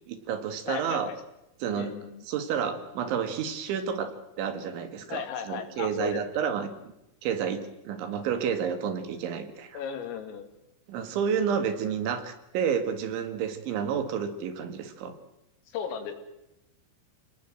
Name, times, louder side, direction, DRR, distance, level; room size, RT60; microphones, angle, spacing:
voice 1, 0.1-1.1 1.6-1.9 2.2-6.9 7.2-9.8 10.9-15.2, right 7 dB, 70° right, 8 dB, 4.2 m, -30 dB
voice 2, 0.7-1.2 1.7-2.3 5.1-6.4 9.7-10.5 15.7-16.1, left 7 dB, 90° left, 7 dB, 5.2 m, -36 dB
29.5 x 19.5 x 7.8 m, 0.86 s
omnidirectional pair, 5.8 m